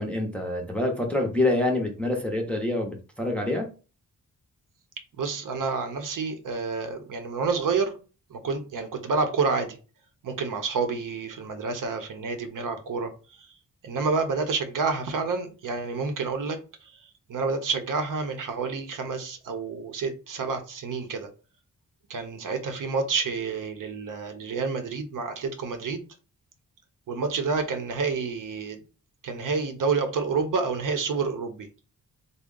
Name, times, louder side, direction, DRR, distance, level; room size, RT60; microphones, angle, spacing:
voice 1, 0.0-3.7, left 2 dB, 5° left, 0.5 m, -26 dB
voice 2, 5.2-7.9 8.3-9.8 10.2-13.1 13.8-16.6 17.3-21.3 22.1-26.0 27.1-28.8 29.2-31.7, right 4 dB, 65° right, 0.7 m, -29 dB
3.5 x 2.1 x 3.7 m
wide cardioid pair, 170°, 35 cm